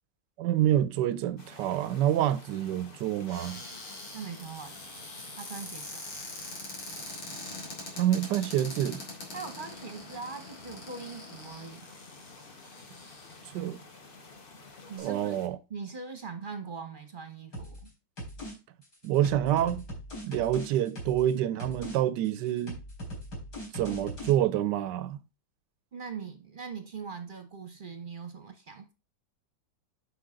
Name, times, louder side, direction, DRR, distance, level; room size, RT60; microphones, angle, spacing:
voice 1, 0.4-3.6 7.9-9.0 13.5-13.8 15.0-15.6 19.0-19.8 20.2-22.8 23.7-25.2, right 11 dB, 75° right, 1.2 m, -27 dB
sound 1, 1.4-15.5, left 3 dB, 35° left, 1.1 m, -51 dB
Cupboard open or close, 3.3-13.6 14.3-14.4 14.6-15.0, left 2 dB, 90° left, 3.6 m, -43 dB
voice 2, 4.1-4.7 5.3-6.0 9.3-11.9 14.9-15.4 15.7-17.9 25.9-28.9, right 5 dB, 35° right, 1.0 m, -41 dB
sound 2, 17.5-17.9 18.2-18.5 18.8-21.3 21.6-22.0 22.2-24.3, equal, 60° left, 4.7 m, -40 dB
10.0 x 5.7 x 3.8 m
omnidirectional pair, 2.0 m